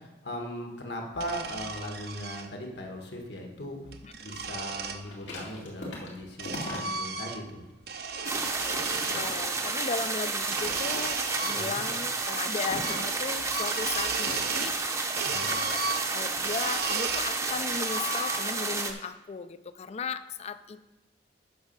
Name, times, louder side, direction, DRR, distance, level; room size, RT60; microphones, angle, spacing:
voice 1, 0.0-7.7 11.5-11.8 15.2-15.6, equal, 70° left, 1 dB, 1.6 m, -39 dB
sound 1, 1.1-2.5 3.7-5.0 5.9-7.6 7.8-9.2 10.4-12.1 12.3-12.4 12.8-13.1 13.4-14.8 15.2-17.3 17.7-18.7, right 4 dB, 60° right, 0.7 m, -35 dB
sound 2, 5.0-7.2 7.6-10.0 10.5-11.3 11.8-13.2 14.2-16.9 17.3-17.7, left 1 dB, 85° left, 2.2 m, -42 dB
sound 3, 8.2-18.9, right 3 dB, 20° right, 0.7 m, -31 dB
voice 2, 8.6-15.8 16.1-20.8, left 5 dB, 35° left, 13 dB, 0.4 m, -37 dB
8.6 x 6.1 x 5.4 m, 1.0 s
head